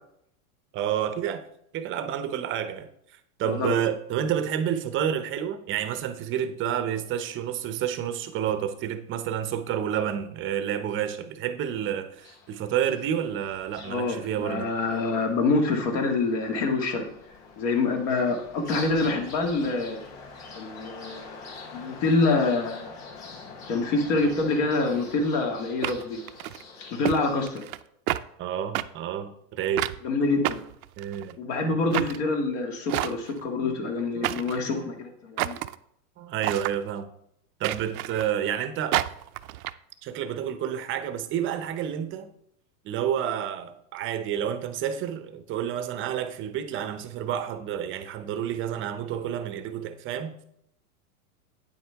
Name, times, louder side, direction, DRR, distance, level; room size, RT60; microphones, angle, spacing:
voice 1, 0.7-1.4 1.7-14.7 28.4-29.9 31.0-31.4 33.6-33.8 34.2-34.3 34.7-34.9 36.2-37.1 37.6-39.0 40.0-42.3 42.8-50.4, right 9 dB, 25° right, 10 dB, 0.7 m, -29 dB
voice 2, 3.4-3.8 13.9-17.1 17.6-20.0 20.5-21.4 21.7-22.9 23.7-26.2 26.9-27.6 30.0-30.6 31.4-35.6, left 3 dB, 60° left, 3 dB, 2.1 m, -26 dB
sound 1, 12.2-27.5, left 4 dB, 35° left, 3.7 m, -45 dB
sound 2, 24.9-25.0 25.8-26.6 27.0-27.2 27.5-27.8 28.1-28.2 28.7-28.9 29.8-30.0 30.4-31.3 31.9-32.2 32.9-33.4 34.2-34.6 35.4-35.7 36.4-36.8 37.6-38.3 38.9-39.7, right 15 dB, 70° right, 0.6 m, -29 dB
9.1 x 7.7 x 3.4 m, 0.73 s
hypercardioid pair, 125°, 45 cm